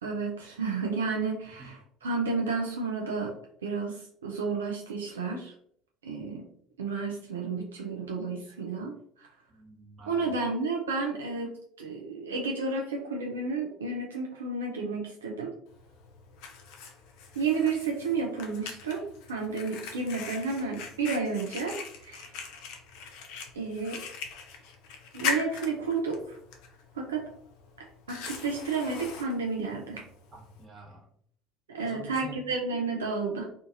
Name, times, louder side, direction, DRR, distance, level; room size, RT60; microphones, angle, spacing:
voice 1, 0.0-5.5 6.0-6.5 6.8-9.3 10.1-11.5 11.8-15.5 17.3-22.4 23.5-24.0 25.1-26.4 26.9-27.3 27.8-30.1 31.7-33.5, right 4 dB, 80° right, 0 dB, 0.4 m, -31 dB
voice 2, 9.5-10.3 30.3-31.1 31.8-32.4, right 2 dB, 25° right, -3 dB, 1.3 m, -47 dB
Fire, 15.7-30.7, left 5 dB, 65° left, 0.5 m, -41 dB
2.5 x 2.5 x 2.5 m, 0.63 s
figure-of-eight pair, 65°, 0 cm